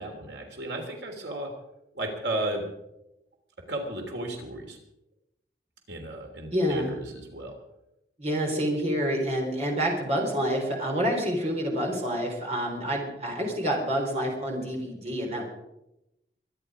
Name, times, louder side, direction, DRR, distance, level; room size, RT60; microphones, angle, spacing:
voice 1, 0.0-1.5 1.9-2.6 3.7-4.8 5.9-7.6, right 1 dB, 90° right, 2 dB, 3.4 m, -34 dB
voice 2, 6.5-6.9 8.2-15.5, equal, 40° right, 0 dB, 4.0 m, -28 dB
24.5 x 10.0 x 5.0 m, 0.87 s
head